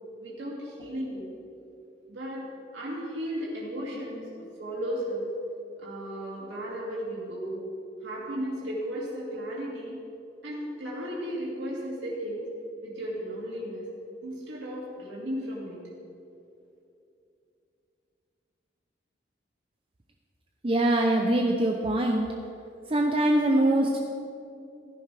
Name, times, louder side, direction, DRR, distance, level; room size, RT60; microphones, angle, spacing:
voice 1, 0.2-1.2 2.1-2.4 2.7-4.3 4.6-5.3 5.8-7.6 8.0-10.0 10.4-12.4 12.8-13.8 14.2-15.8, equal, 85° right, -5 dB, 2.4 m, -35 dB
voice 2, 20.6-22.3 22.9-24.0, right 1 dB, 30° right, 1 dB, 0.7 m, -23 dB
16.0 x 10.5 x 3.4 m, 2.7 s
head